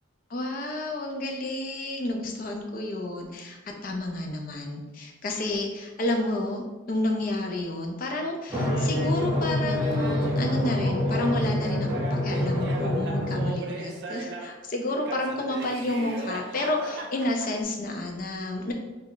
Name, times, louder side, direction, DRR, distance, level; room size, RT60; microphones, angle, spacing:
voice 1, 0.3-18.7, left 1 dB, 40° left, 2 dB, 0.4 m, -30 dB
Drum, 8.5-13.5, left 1 dB, 10° right, 0.6 m, -26 dB
Laughter, 8.7-14.6 15.0-17.6, right 3 dB, 55° right, 0.3 m, -38 dB
2.2 x 2.0 x 3.7 m, 1.2 s
head